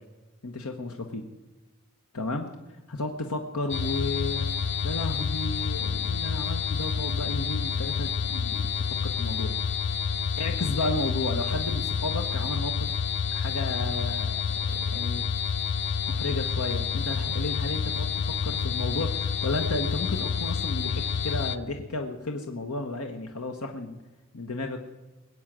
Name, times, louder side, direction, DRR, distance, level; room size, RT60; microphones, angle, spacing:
voice 1, 0.4-1.3 2.1-2.5 2.9-4.5 4.8-8.7 9.0-9.5 10.4-12.9 13.3-15.2 16.1-24.0 24.3-24.8, left 2 dB, 85° left, 3 dB, 1.3 m, -33 dB
sound 1, 3.7-21.6, left 6 dB, 55° left, 0.6 m, -29 dB
21.0 x 8.2 x 7.5 m, 1.1 s
head